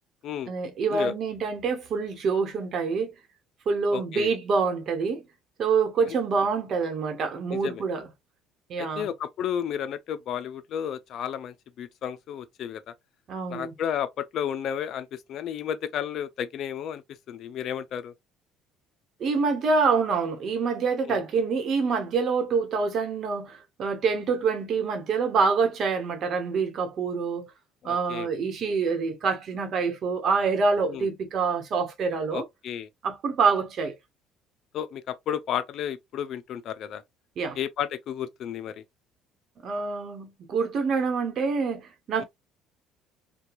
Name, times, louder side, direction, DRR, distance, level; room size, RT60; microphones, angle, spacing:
voice 1, 0.5-3.1 3.7-5.2 5.6-8.1 8.7-9.1 13.3-13.7 19.2-27.5 27.8-32.4 33.0-33.9 37.4-37.6 39.6-42.2, right 5 dB, 55° right, 1.0 m, -26 dB
voice 2, 3.9-4.3 6.4-6.5 7.5-7.8 8.8-12.9 13.5-17.0 17.3-18.1 21.0-21.2 27.8-28.3 30.9-31.1 32.3-32.9 34.7-37.0 37.6-38.8 42.2-42.3, left 9 dB, 60° left, 0.4 m, -32 dB
2.9 x 2.2 x 2.4 m
supercardioid pair, 75°, 0 cm